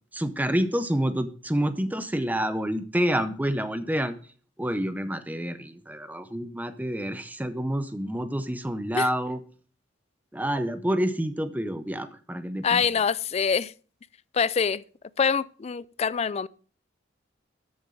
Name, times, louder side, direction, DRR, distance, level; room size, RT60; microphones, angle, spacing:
voice 1, 0.1-4.2 4.6-9.4 10.3-12.8, equal, 10° right, 0.6 m, -28 dB
voice 2, 12.6-13.7 14.3-14.8 15.2-16.5, left 6 dB, 35° left, 0.4 m, -25 dB
13.0 x 7.1 x 3.8 m
head